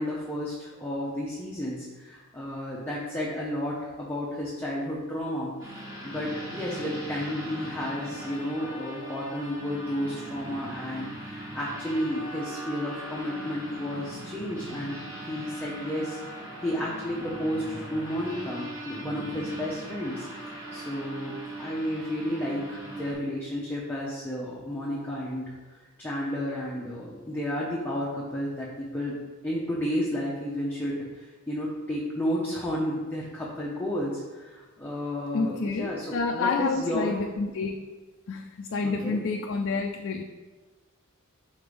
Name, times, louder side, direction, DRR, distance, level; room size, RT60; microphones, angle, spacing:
voice 1, 0.0-5.6 6.0-15.0 15.3-16.2 16.6-25.5 26.0-29.2 29.4-37.1 39.0-39.2, equal, 10° left, -6 dB, 0.7 m, -32 dB
sound 1, 5.6-23.1, right 1 dB, 15° right, 1.4 m, -39 dB
voice 2, 35.3-37.7 38.3-40.2, left 4 dB, 60° left, 3 dB, 0.4 m, -28 dB
5.2 x 4.0 x 5.1 m, 1.3 s
head